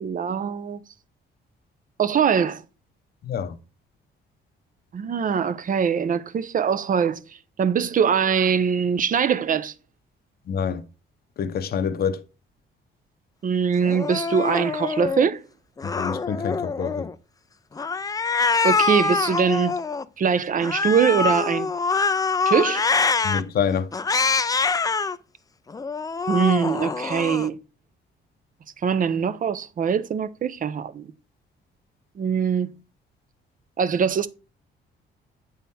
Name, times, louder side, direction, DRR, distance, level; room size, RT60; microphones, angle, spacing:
voice 1, 0.0-0.8 2.0-2.6 4.9-7.2 7.6-9.7 13.4-15.4 18.6-19.7 20.2-21.7 22.5-22.9 26.3-27.6 28.8-31.1 32.2-32.7 33.8-34.3, right 7 dB, 45° right, 0.6 m, -22 dB
voice 2, 3.2-3.6 10.5-10.8 11.4-12.2 15.8-17.1 23.2-23.9, left 7 dB, 50° left, 0.7 m, -26 dB
Cat, 13.8-15.3 15.8-17.1 17.8-20.0 20.6-23.4 23.9-25.2 25.7-27.5, left 4 dB, 20° left, 0.4 m, -24 dB
8.3 x 3.7 x 4.1 m
cardioid pair, 90°, 20 cm